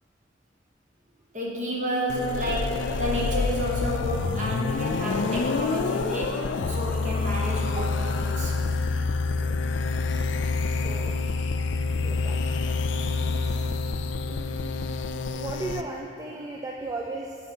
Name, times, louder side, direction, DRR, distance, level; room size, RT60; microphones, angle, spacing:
voice 1, 1.3-8.5 13.2-13.4, equal, 40° right, -4 dB, 1.5 m, -31 dB
sound 1, 2.1-15.8, left 4 dB, 80° left, 0.4 m, -27 dB
voice 2, 10.7-11.1 12.0-12.6 13.4-13.6 14.3-14.8 15.3-17.4, right 2 dB, 20° right, -1 dB, 0.3 m, -36 dB
11.0 x 4.3 x 4.4 m, 2.4 s
head